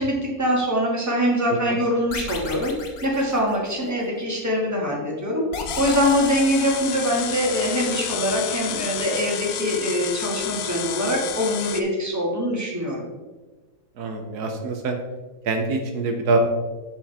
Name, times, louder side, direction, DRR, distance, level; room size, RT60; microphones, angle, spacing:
voice 1, 0.0-2.7 3.0-13.0, equal, 10° right, -3 dB, 1.8 m, -23 dB
sound 1, 2.1-4.1 5.5-7.3, left 5 dB, 65° left, 1.5 m, -35 dB
sound 2, 5.7-11.8, left 10 dB, 85° left, 0.5 m, -31 dB
voice 2, 14.0-15.0 15.4-16.4, right 3 dB, 75° right, 4 dB, 1.4 m, -24 dB
7.4 x 6.9 x 3.5 m, 1.2 s
omnidirectional pair, 1.7 m